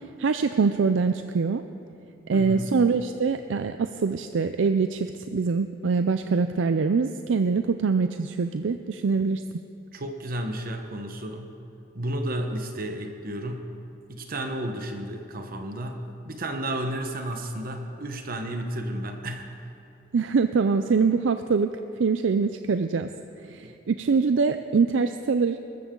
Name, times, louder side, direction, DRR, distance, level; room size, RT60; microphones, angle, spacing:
voice 1, 0.2-1.6 2.3-9.4 20.1-21.7 22.0-23.1 23.5-25.6, right 5 dB, 90° right, 9 dB, 0.5 m, -24 dB
voice 2, 2.3-2.8 9.9-11.5 11.9-13.7 14.1-19.5 23.6-23.7, right 1 dB, 50° right, 5 dB, 1.1 m, -32 dB
21.0 x 13.5 x 3.8 m, 2.8 s
head